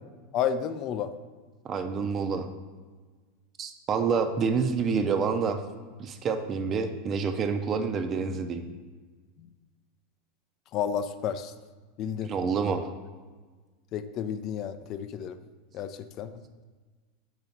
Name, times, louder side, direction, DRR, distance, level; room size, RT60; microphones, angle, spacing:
voice 1, 0.3-1.1 10.7-11.5 12.0-12.3 13.9-15.4 15.7-16.3, left 8 dB, 45° left, 11 dB, 0.4 m, -31 dB
voice 2, 1.6-2.5 3.6-5.6 6.0-8.6 12.2-12.9, right 5 dB, 35° right, 7 dB, 0.5 m, -28 dB
4.8 x 4.0 x 5.8 m, 1.4 s
hypercardioid pair, 90°, 0 cm